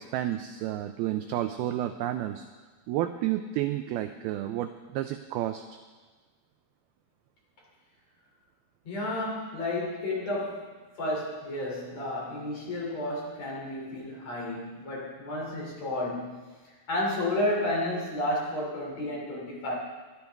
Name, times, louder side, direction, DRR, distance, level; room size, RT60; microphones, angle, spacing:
voice 1, 0.0-2.5 2.9-5.6, right 13 dB, 85° right, 8 dB, 2.2 m, -31 dB
voice 2, 8.9-16.4 16.6-19.8, left 1 dB, 40° left, -3 dB, 3.9 m, -32 dB
23.5 x 12.5 x 3.5 m, 1.3 s
omnidirectional pair, 5.0 m